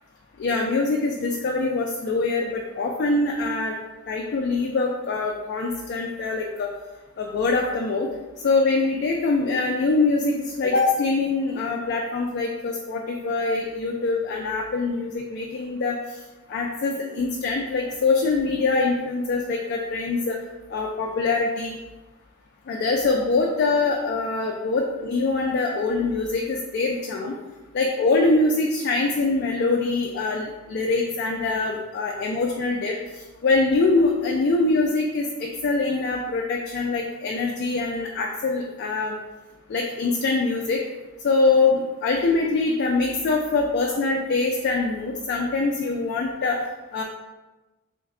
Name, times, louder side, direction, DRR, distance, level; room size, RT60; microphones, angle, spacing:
voice 1, 0.4-3.8 4.1-6.7 7.2-8.1 8.4-16.0 16.5-20.4 20.7-21.8 22.7-27.3 27.7-32.9 33.4-39.2 39.7-40.8 41.2-46.6 46.9-47.0, left 3 dB, 50° left, 0 dB, 0.3 m, -24 dB
3.2 x 2.2 x 3.6 m, 1.1 s
head